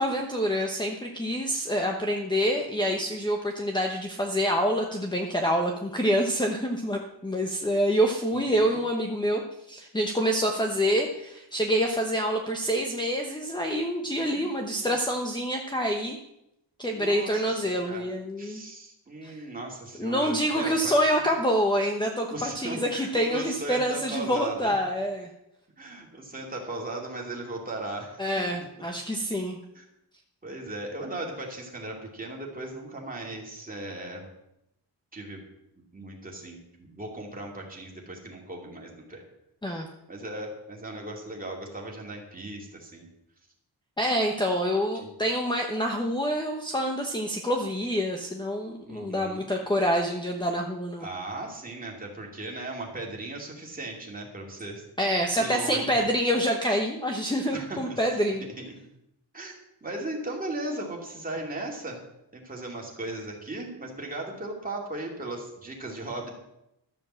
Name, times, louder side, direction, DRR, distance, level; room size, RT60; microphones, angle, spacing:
voice 1, 0.0-9.4 9.7-16.2 16.8-18.6 19.2-19.4 20.0-25.3 28.2-29.6 39.6-39.9 44.0-51.1 55.0-58.4, equal, 10° left, 2 dB, 1.0 m, -27 dB
voice 2, 8.3-8.8 14.2-15.0 16.9-18.1 18.4-21.3 22.3-24.7 25.8-28.5 29.7-29.8 30.4-34.2 35.1-35.4 35.9-39.2 39.7-39.8 40.1-43.0 45.0-45.1 48.8-49.4 51.0-54.8 55.4-56.0 57.5-58.0 58.4-58.8 59.3-59.5 59.8-62.0 62.3-66.3, right 2 dB, 20° right, -1 dB, 2.7 m, -37 dB
13.0 x 7.2 x 7.5 m, 0.84 s
wide cardioid pair, 175°, 42 cm